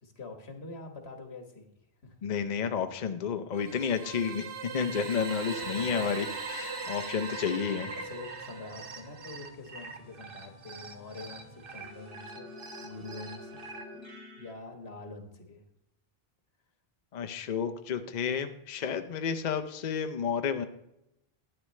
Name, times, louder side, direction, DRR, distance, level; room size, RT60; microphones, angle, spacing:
voice 1, 0.0-2.2 5.6-5.9 7.3-12.5 12.8-13.6 13.8-14.0 14.4-15.6, left 3 dB, 80° left, 4 dB, 1.6 m, -46 dB
voice 2, 2.2-4.5 4.7-7.9 17.1-20.6, left 6 dB, 50° left, 7 dB, 0.7 m, -31 dB
sound 1, 3.5-9.5, right 4 dB, 90° right, 1.4 m, -40 dB
sound 2, 6.1-13.8, right 4 dB, 60° right, 1.2 m, -46 dB
sound 3, 7.9-14.5, left 2 dB, 40° right, 2.6 m, -50 dB
12.0 x 9.4 x 3.2 m, 0.84 s
omnidirectional pair, 1.1 m